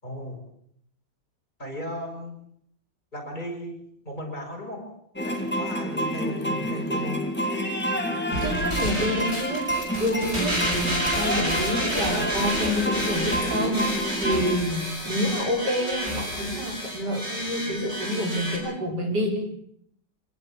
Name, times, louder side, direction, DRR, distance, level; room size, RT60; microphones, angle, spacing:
voice 1, 0.0-0.4 1.6-2.4 3.1-7.3 17.6-17.7, left 1 dB, 25° left, 2 dB, 6.1 m, -36 dB
sound 1, 5.2-14.6, equal, 5° left, 3.2 m, -28 dB
sound 2, 8.3-18.6, equal, 35° right, 7.6 m, -30 dB
voice 2, 8.4-19.4, equal, 70° right, 2 dB, 5.7 m, -28 dB
25.5 x 20.5 x 7.3 m, 0.70 s
omnidirectional pair, 1.9 m